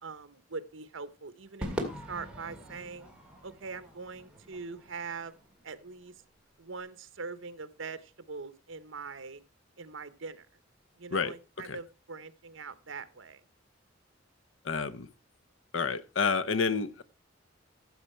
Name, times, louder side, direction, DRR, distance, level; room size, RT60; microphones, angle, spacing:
voice 1, 0.0-3.1 3.4-5.3 5.6-6.2 6.6-9.4 9.8-10.5 11.0-13.4, right 4 dB, 70° right, 1.0 m, -42 dB
Crowd / Fireworks, 1.6-6.1, equal, 5° right, 2.2 m, -42 dB
voice 2, 14.6-15.1 15.7-17.0, left 5 dB, 70° left, 0.8 m, -29 dB
13.5 x 7.3 x 4.4 m
head